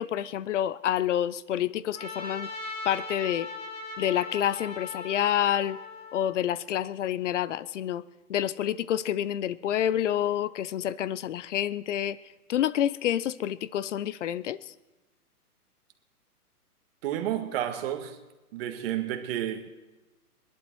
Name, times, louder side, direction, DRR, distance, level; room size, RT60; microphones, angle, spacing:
voice 1, 0.0-2.5 2.8-3.5 4.0-5.8 6.1-8.0 8.3-14.7, left 11 dB, 50° left, 0.7 m, -28 dB
Trumpet, 1.9-6.4, left 3 dB, 10° left, 1.7 m, -39 dB
voice 2, 17.0-18.2 18.5-19.7, right 11 dB, 40° right, 1.7 m, -31 dB
21.0 x 11.5 x 4.6 m
hypercardioid pair, 145°, 47 cm